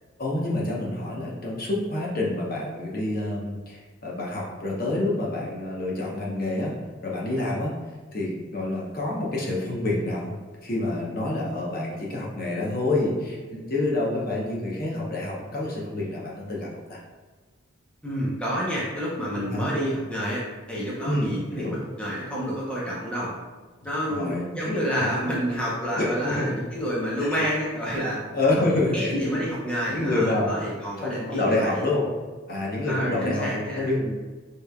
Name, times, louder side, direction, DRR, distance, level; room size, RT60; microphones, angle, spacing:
voice 1, 0.2-6.7 7.0-7.7 8.1-10.3 10.6-17.0 19.3-19.7 21.0-21.8 24.1-24.7 25.0-25.1 26.0-26.5 27.2-27.4 28.3-29.4 29.9-30.6 31.0-32.1 32.5-34.1, left 2 dB, 45° left, -4 dB, 0.9 m, -27 dB
voice 2, 18.0-23.3 23.8-28.2 28.5-28.6 28.9-31.8 32.9-33.9, equal, 5° left, -7 dB, 0.7 m, -29 dB
6.8 x 3.2 x 2.3 m, 1.3 s
head